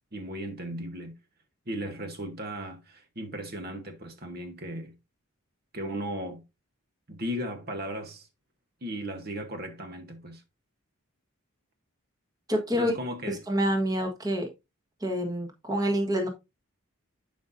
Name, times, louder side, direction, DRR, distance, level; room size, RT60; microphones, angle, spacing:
voice 1, 0.1-1.2 1.7-4.9 5.7-6.4 7.1-8.3 8.8-10.4 12.7-13.4, equal, 45° right, 1.2 m, -36 dB
voice 2, 12.5-12.9 13.3-14.5 15.0-16.3, equal, 15° right, 1.4 m, -27 dB
11.5 x 5.3 x 2.6 m
head